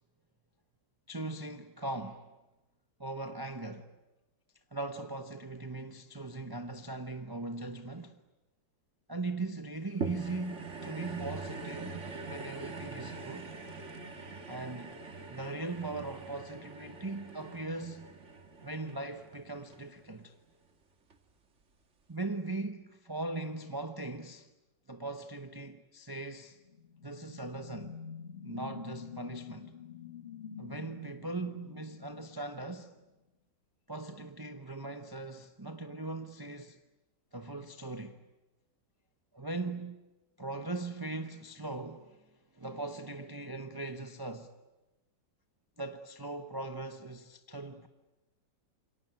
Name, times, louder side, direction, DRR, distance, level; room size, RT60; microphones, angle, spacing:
voice 1, 1.1-2.3 3.0-3.9 4.7-8.2 9.1-13.5 14.5-14.9 15.3-18.1 18.6-20.3 22.1-24.5 24.9-26.6 27.0-28.0 28.4-29.7 30.6-32.9 33.9-36.8 37.3-38.2 39.3-40.0 40.4-42.3 42.5-44.5 45.8-47.9, right 2 dB, 20° right, 0.7 m, -39 dB
sound 1, 10.0-20.5 21.1-21.2, right 4 dB, 40° right, 2.0 m, -43 dB
sound 2, 26.5-33.0, left 7 dB, 30° left, 1.9 m, -48 dB
27.5 x 24.0 x 9.0 m
omnidirectional pair, 2.0 m